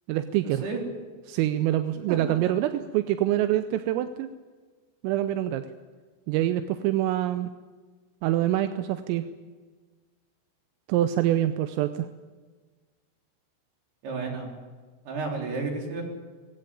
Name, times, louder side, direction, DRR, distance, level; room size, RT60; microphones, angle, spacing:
voice 1, 0.1-0.6 1.3-4.3 5.0-5.7 6.3-7.5 8.2-9.3 10.9-12.1, right 13 dB, 85° right, 10 dB, 3.4 m, -25 dB
voice 2, 14.0-14.5 15.1-16.0, right 4 dB, 55° right, 1 dB, 5.6 m, -31 dB
21.0 x 16.5 x 9.7 m, 1.4 s
omnidirectional pair, 5.8 m